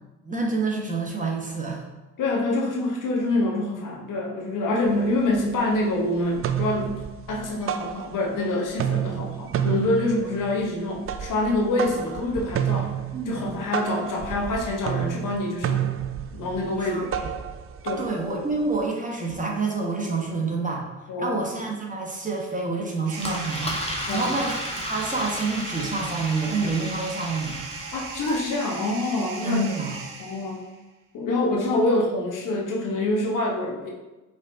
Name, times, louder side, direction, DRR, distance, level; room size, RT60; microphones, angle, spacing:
voice 1, 0.2-1.8 13.1-13.3 16.8-17.3 18.0-27.6 29.4-30.0, right 3 dB, 20° right, -1 dB, 1.3 m, -28 dB
voice 2, 2.2-7.0 7.3-13.0 13.3-15.9 16.3-17.1 17.8-18.1 21.1-21.4 24.1-24.4 27.9-29.6 30.2-30.6 31.1-33.9, left 2 dB, 60° left, -1 dB, 1.1 m, -26 dB
sound 1, 4.9-5.0 5.3-5.9 6.2-8.4 8.7-18.8, right 10 dB, 40° right, 0.4 m, -30 dB
sound 2, 23.1-30.8, right 5 dB, 60° right, 0.8 m, -38 dB
Engine, 23.2-28.4, left 1 dB, 15° left, 1.2 m, -34 dB
5.0 x 3.7 x 2.7 m, 1.1 s
hypercardioid pair, 45°, 37 cm